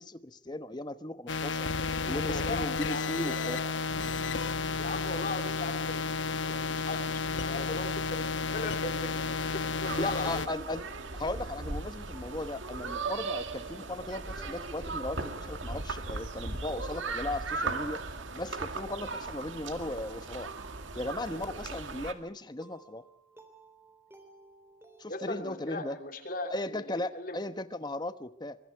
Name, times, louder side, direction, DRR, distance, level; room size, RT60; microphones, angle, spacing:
voice 1, 0.0-1.7 2.1-3.6 10.0-10.9 11.1-18.0 18.3-20.5 20.9-23.1 25.0-26.0 26.5-28.6, left 1 dB, 20° left, 12 dB, 1.0 m, -37 dB
sound 1, 1.3-10.5, left 4 dB, 70° left, 1.1 m, -32 dB
voice 2, 2.0-3.8 4.8-10.5 25.1-27.4, left 2 dB, 45° left, 6 dB, 3.1 m, -39 dB
sound 2, 9.8-22.1, right 3 dB, 80° right, 2.1 m, -37 dB
sound 3, 12.1-26.1, right 2 dB, 10° right, 3.7 m, -58 dB
24.0 x 23.5 x 4.6 m, 0.75 s
head